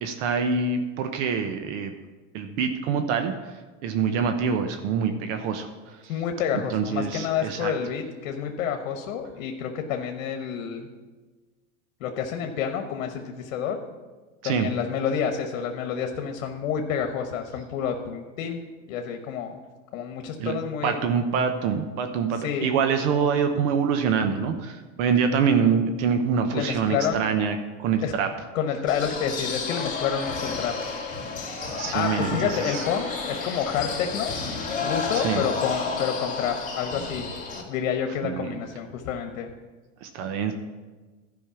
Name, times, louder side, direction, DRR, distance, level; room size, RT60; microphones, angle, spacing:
voice 1, 0.0-1.9 2.3-3.6 3.8-6.1 6.7-7.7 14.4-14.7 20.4-20.5 20.8-28.3 31.8-32.8 35.1-35.4 38.2-38.5 40.0-40.5, right 6 dB, 65° right, 7 dB, 1.0 m, -25 dB
voice 2, 6.1-10.9 12.0-13.8 14.4-18.6 18.9-19.5 19.9-21.1 22.4-22.8 26.5-27.2 28.0-28.1 28.5-30.7 31.9-34.4 34.8-37.3 37.7-39.5, left 7 dB, 80° left, 5 dB, 1.2 m, -29 dB
sound 1, 28.9-37.6, left 4 dB, 20° left, 2.3 m, -31 dB
12.0 x 5.4 x 7.0 m, 1.3 s
supercardioid pair, 135°, 39 cm